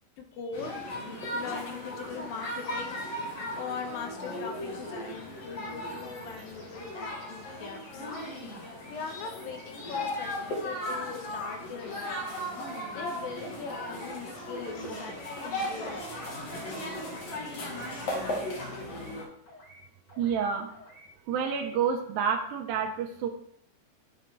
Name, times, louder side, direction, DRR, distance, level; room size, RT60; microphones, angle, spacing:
voice 1, 0.2-8.1 8.9-12.2 13.0-15.1 15.4-16.4, left 5 dB, 75° left, 5 dB, 2.3 m, -41 dB
sound 1, 0.5-19.2, left 1 dB, 50° left, 2.3 m, -37 dB
sound 2, 7.6-7.9 8.2-9.0 9.2-9.7 10.0-10.3 10.6-11.0 11.2-11.6 11.9-12.2 12.5-12.9 13.1-13.5 13.8-14.1 14.4-14.8 15.0-15.4 15.7-16.0 16.3-16.7 16.9-17.3 17.6-17.9 18.2-18.5 18.8-19.2 19.5-19.8 20.1-20.4 20.7-21.1 21.4-21.7, equal, 35° left, 2.5 m, -53 dB
voice 2, 20.2-20.7 21.3-23.3, right 7 dB, 80° right, 4 dB, 2.5 m, -29 dB
11.0 x 3.8 x 4.5 m, 0.68 s
omnidirectional pair, 4.4 m